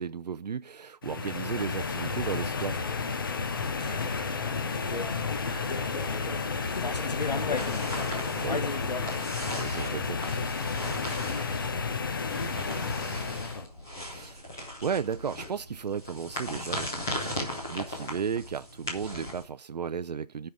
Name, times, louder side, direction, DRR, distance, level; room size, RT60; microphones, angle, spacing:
voice 1, 0.0-2.9 8.4-8.6 9.5-10.2 14.1-14.5 14.8-20.5, right 7 dB, 85° right, 0.5 m, -34 dB
sound 1, 1.0-13.6, left 5 dB, 35° left, 0.8 m, -32 dB
sound 2, 2.0-9.0, left 3 dB, 85° left, 1.6 m, -37 dB
voice 2, 3.6-14.3, left 3 dB, 65° left, 2.2 m, -42 dB
sound 3, 7.6-19.4, equal, 5° left, 0.5 m, -38 dB
10.5 x 5.5 x 6.3 m
hypercardioid pair, 170°, 21 cm